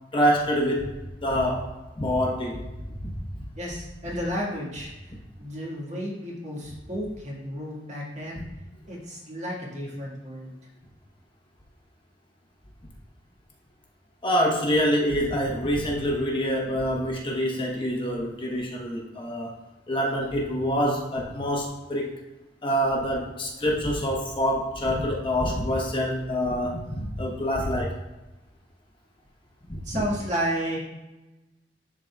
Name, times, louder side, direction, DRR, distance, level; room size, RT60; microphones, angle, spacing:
voice 1, 0.1-0.9 1.2-1.7 2.0-2.6 2.9-3.4 14.2-19.5 19.9-22.1 22.6-27.9 29.7-30.0, equal, 30° left, -2 dB, 1.0 m, -26 dB
voice 2, 3.6-8.4 8.9-10.5 29.8-30.8, equal, 40° right, -4 dB, 1.7 m, -32 dB
11.0 x 3.9 x 2.3 m, 1.1 s
head